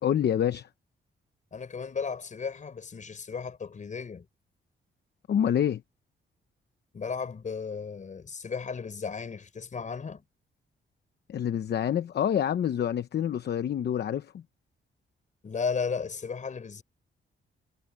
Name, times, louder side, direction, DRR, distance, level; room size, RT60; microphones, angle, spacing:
voice 1, 0.0-0.7 5.3-5.8 11.3-14.4, left 9 dB, 60° left, 0.8 m, -27 dB
voice 2, 1.5-4.3 6.9-10.2 15.4-16.8, left 5 dB, 40° left, 4.5 m, -34 dB
wide cardioid pair, 135°, 20 cm